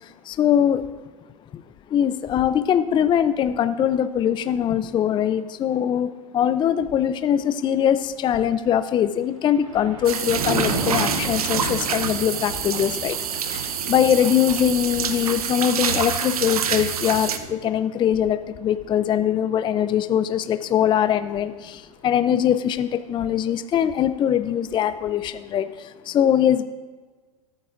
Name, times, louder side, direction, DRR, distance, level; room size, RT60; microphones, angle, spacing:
voice 1, 0.3-0.8 1.9-13.2 13.5-13.6 13.9-25.7 26.1-26.6, left 9 dB, 25° left, 11 dB, 0.5 m, -22 dB
Thunder, 9.2-20.7 21.1-21.5, right 3 dB, 65° right, 3.0 m, -34 dB
sound 1, 10.0-17.4, right 7 dB, 90° right, 0.8 m, -27 dB
18.0 x 9.3 x 2.6 m, 1.4 s
hypercardioid pair, 105°, 19 cm